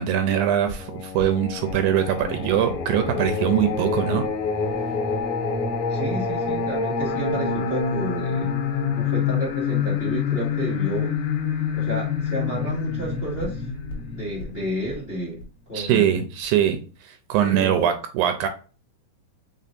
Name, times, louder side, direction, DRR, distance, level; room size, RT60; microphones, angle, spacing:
voice 1, 0.0-4.2 15.7-18.5, right 10 dB, 80° right, 7 dB, 1.9 m, -22 dB
Singing, 0.7-15.4, left 5 dB, 75° left, 2.4 m, -27 dB
voice 2, 5.9-8.5 9.0-11.1 11.7-13.6 14.1-15.4 15.7-16.1 17.4-17.9, right 1 dB, 20° left, -4 dB, 1.9 m, -31 dB
5.4 x 3.7 x 2.5 m, 0.36 s
omnidirectional pair, 3.7 m